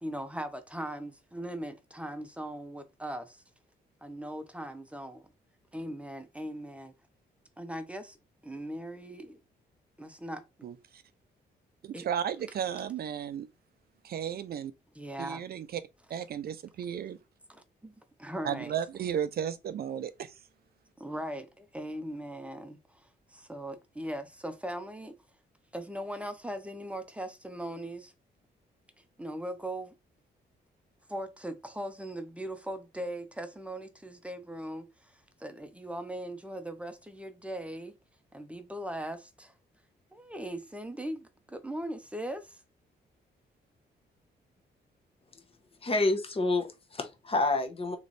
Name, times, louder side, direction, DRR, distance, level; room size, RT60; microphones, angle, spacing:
voice 1, 0.0-3.4 4.0-5.3 5.7-6.9 7.6-8.2 8.4-9.4 10.0-10.4 11.9-12.0 14.9-15.4 17.5-18.7 21.0-25.2 25.7-28.1 29.0-29.9 31.1-38.0 38.3-39.5 40.1-42.6, right 1 dB, 5° right, 0.7 m, -39 dB
voice 2, 10.6-11.0 11.8-13.5 14.0-14.7 15.2-15.8 16.1-17.2 18.4-20.4, right 8 dB, 60° right, 0.4 m, -34 dB
voice 3, 45.8-48.0, left 2 dB, 30° left, 1.0 m, -28 dB
3.3 x 3.0 x 4.0 m
cardioid pair, 105°, 18 cm